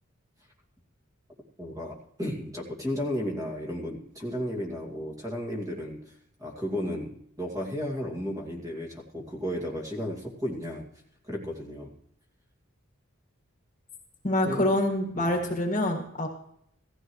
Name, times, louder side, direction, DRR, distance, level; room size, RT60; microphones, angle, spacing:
voice 1, 1.6-10.8 11.3-11.9 14.4-14.7 15.1-15.3, equal, 15° right, -1 dB, 2.3 m, -34 dB
voice 2, 14.2-16.3, left 1 dB, 35° left, 2 dB, 1.9 m, -26 dB
17.5 x 14.5 x 3.2 m, 0.70 s
head